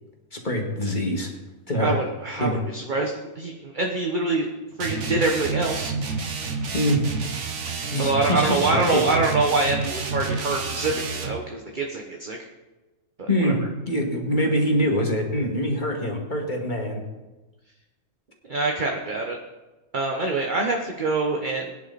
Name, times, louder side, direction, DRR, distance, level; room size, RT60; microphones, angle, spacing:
voice 1, 0.3-1.3 1.7-2.0 2.4-2.6 6.7-7.0 7.9-9.0 13.3-17.0, equal, 30° left, 0 dB, 2.5 m, -24 dB
voice 2, 1.8-4.5 4.8-5.9 8.0-12.4 13.2-13.5 18.5-19.4 19.9-21.7, right 3 dB, 35° right, 1 dB, 1.3 m, -25 dB
sound 1, 4.8-11.4, right 4 dB, 60° right, 1.5 m, -29 dB
21.5 x 10.0 x 4.2 m, 1.1 s
omnidirectional pair, 1.5 m